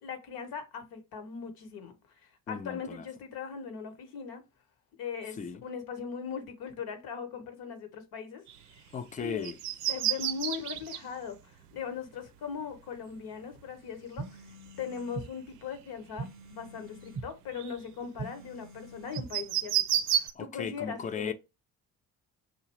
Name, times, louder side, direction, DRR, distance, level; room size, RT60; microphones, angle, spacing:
voice 1, 0.0-1.9 2.2-4.4 5.0-9.5 9.9-14.4 14.8-19.7 20.1-21.3, left 6 dB, 50° left, 1.2 m, -40 dB
voice 2, 2.5-3.0 5.4-5.6 8.9-9.6 20.4-21.3, left 6 dB, 20° left, 0.4 m, -36 dB
sound 1, 8.5-8.8 9.2-11.0 12.8-12.9 14.7-15.2 15.6-16.0 16.5-16.7 17.0-18.0 19.1-20.3, right 11 dB, 80° right, 0.5 m, -30 dB
sound 2, 14.2-15.3 16.2-17.3 18.2-19.3, right 4 dB, 30° right, 0.9 m, -42 dB
4.9 x 2.7 x 3.0 m
figure-of-eight pair, 50°, 46 cm